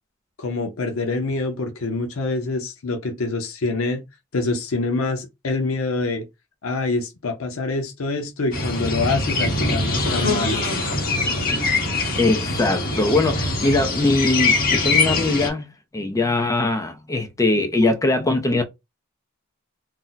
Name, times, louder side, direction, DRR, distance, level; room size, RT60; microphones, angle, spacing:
voice 1, 0.4-4.0 4.3-6.2 6.6-10.6, left 3 dB, 90° left, 0.7 m, -25 dB
sound 1, 8.5-15.5, left 3 dB, 45° left, 1.1 m, -23 dB
voice 2, 12.2-15.7 15.9-18.6, left 2 dB, 15° left, 0.5 m, -21 dB
2.7 x 2.0 x 3.9 m
head